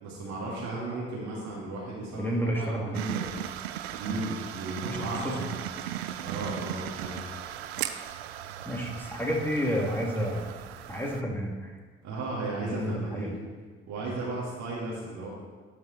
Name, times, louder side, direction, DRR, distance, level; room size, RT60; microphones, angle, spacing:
voice 1, 0.0-3.3 4.0-5.5 6.2-7.2 12.0-13.3 13.9-15.3, right 2 dB, 65° right, -5 dB, 2.4 m, -35 dB
voice 2, 2.1-3.0 4.0-4.2 4.9-5.4 8.6-10.5 10.9-11.8 12.6-13.4, equal, 5° left, -2 dB, 2.6 m, -31 dB
sound 1, 2.9-11.2, right 11 dB, 80° right, 0.5 m, -37 dB
12.0 x 5.9 x 4.3 m, 1.4 s
figure-of-eight pair, 45°, 31 cm